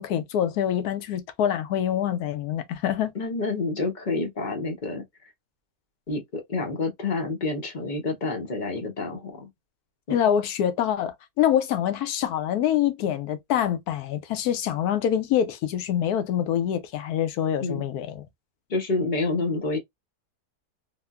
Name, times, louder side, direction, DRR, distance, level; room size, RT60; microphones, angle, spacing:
voice 1, 0.0-3.1 10.1-18.2, left 10 dB, 90° left, 1.2 m, -25 dB
voice 2, 3.1-5.0 6.1-9.5 10.1-10.2 17.6-17.8 18.7-19.8, left 3 dB, 45° left, 0.6 m, -28 dB
3.5 x 2.1 x 2.3 m
omnidirectional pair, 1.6 m